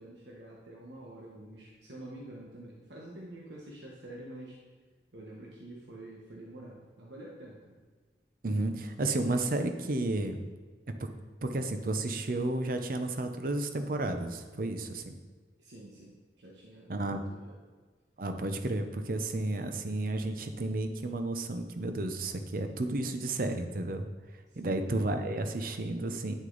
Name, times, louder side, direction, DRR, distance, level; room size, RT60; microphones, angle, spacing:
voice 1, 0.0-4.6 5.1-7.8 15.6-17.6 24.5-24.9, right 1 dB, 85° right, -2 dB, 1.1 m, -48 dB
voice 2, 8.4-10.4 10.9-11.1 11.4-15.1 16.9-17.2 18.2-24.0 24.6-26.3, right 2 dB, 50° right, 7 dB, 0.7 m, -32 dB
9.5 x 6.2 x 3.9 m, 1.4 s
head